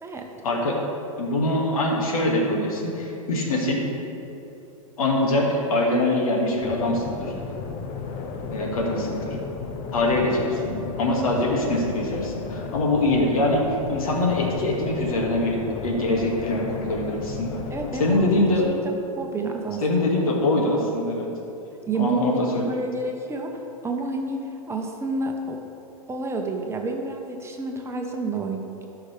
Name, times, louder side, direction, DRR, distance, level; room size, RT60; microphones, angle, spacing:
voice 1, 0.4-0.8 1.2-3.8 5.0-7.3 8.5-9.4 9.9-13.6 13.9-17.6 18.0-18.7 19.8-21.3 21.9-22.6, left 1 dB, 75° left, -1 dB, 2.2 m, -23 dB
sound 1, 6.6-18.6, left 4 dB, 45° left, 0.9 m, -34 dB
voice 2, 17.7-18.3 18.6-19.8 21.8-22.4 22.7-25.6 26.1-28.9, right 3 dB, 15° right, 2 dB, 1.0 m, -30 dB
16.5 x 5.9 x 3.4 m, 2.9 s
hypercardioid pair, 105°, 18 cm